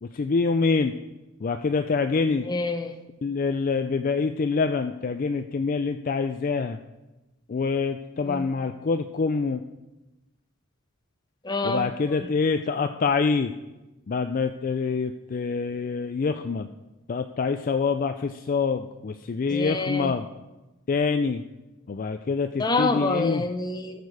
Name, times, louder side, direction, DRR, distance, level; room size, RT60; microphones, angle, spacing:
voice 1, 0.0-1.0 1.4-2.5 3.2-6.8 7.5-9.6 11.6-13.5 14.1-16.7 17.1-20.3 20.9-21.4 21.9-23.4, left 4 dB, 40° left, 8 dB, 0.4 m, -26 dB
voice 2, 2.5-2.9 8.2-8.4 11.4-12.2 19.5-20.1 22.6-24.0, left 3 dB, 20° left, 7 dB, 0.7 m, -27 dB
13.5 x 6.7 x 4.8 m, 1.0 s
head